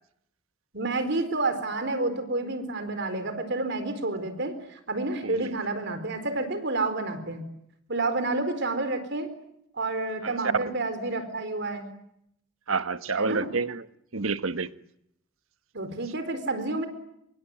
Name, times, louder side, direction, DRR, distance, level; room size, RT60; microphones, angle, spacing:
voice 1, 0.7-7.5 7.9-9.3 9.7-11.9 13.1-13.5 15.7-16.9, right 2 dB, 55° right, 4.3 m, -29 dB
voice 2, 12.7-13.8 14.1-14.7, right 4 dB, 75° right, 1.3 m, -28 dB
26.5 x 23.0 x 9.2 m
head